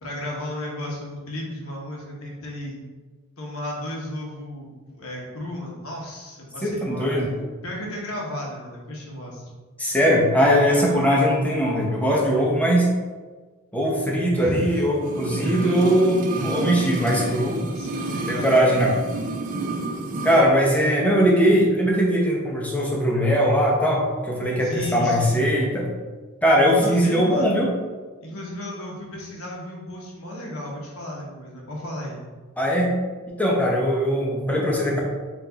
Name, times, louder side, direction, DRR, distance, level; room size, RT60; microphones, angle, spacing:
voice 1, 0.0-2.8 3.4-7.1 7.6-9.5 10.6-11.0 14.4-14.8 15.4-15.6 17.5-18.8 24.6-25.4 26.6-27.5 28.2-32.2, left 1 dB, 65° left, -2 dB, 1.1 m, -34 dB
voice 2, 6.6-7.3 9.8-12.9 13.7-17.6 18.3-18.9 20.2-25.8 26.4-27.7 32.6-32.9 33.3-35.0, equal, 5° left, -3 dB, 0.8 m, -20 dB
sound 1, 15.0-20.5 20.7-20.8, right 2 dB, 40° right, 0.4 m, -30 dB
4.6 x 2.6 x 3.9 m, 1.3 s
head